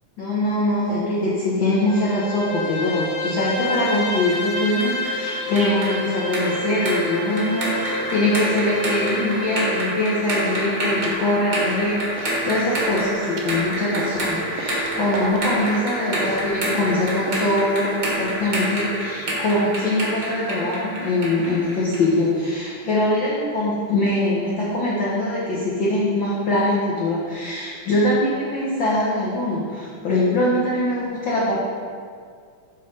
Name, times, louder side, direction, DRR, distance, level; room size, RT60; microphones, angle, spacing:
voice 1, 0.2-31.6, left 1 dB, 70° left, -7 dB, 1.1 m, -23 dB
Bowed string instrument, 1.6-10.0, left 1 dB, 50° left, 1.4 m, -29 dB
sound 1, 4.3-22.1, right 1 dB, 45° right, 1.1 m, -28 dB
sound 2, 10.4-10.6 11.0-11.3 11.6-12.4 12.7-18.3, right 3 dB, 75° right, 2.1 m, -37 dB
7.3 x 4.2 x 5.2 m, 2.1 s
omnidirectional pair, 3.7 m